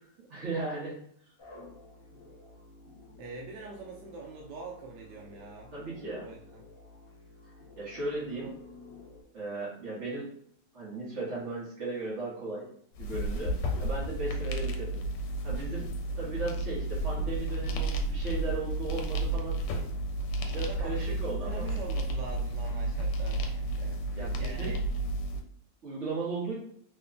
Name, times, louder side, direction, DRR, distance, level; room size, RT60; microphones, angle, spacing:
voice 1, 0.3-1.0 5.7-6.3 7.8-8.5 9.3-10.3 10.7-12.7 13.0-15.0 15.4-19.6 20.5-21.7 24.1-24.7 25.8-26.5, right 3 dB, 45° right, -8 dB, 1.1 m, -36 dB
sound 1, 1.4-9.2, left 2 dB, 30° left, 0.6 m, -52 dB
voice 2, 3.2-5.7 6.2-6.6 8.4-8.5 20.5-24.8, right 4 dB, 80° right, -1 dB, 1.2 m, -44 dB
sound 2, 12.9-25.4, right 2 dB, 80° left, 1.2 m, -32 dB
3.3 x 2.2 x 3.7 m, 0.65 s
omnidirectional pair, 1.9 m